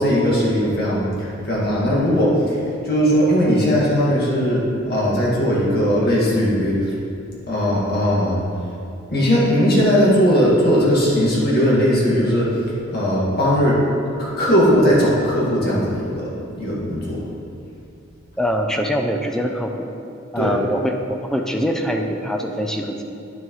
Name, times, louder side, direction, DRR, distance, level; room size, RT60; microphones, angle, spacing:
voice 1, 0.0-7.0 7.5-8.4 9.1-12.6 12.9-13.8 14.2-17.3 20.4-20.6, equal, 55° left, -6 dB, 2.0 m, -18 dB
voice 2, 18.4-19.9 20.3-23.0, equal, 5° left, 2 dB, 0.4 m, -23 dB
10.5 x 6.4 x 3.1 m, 2.5 s
head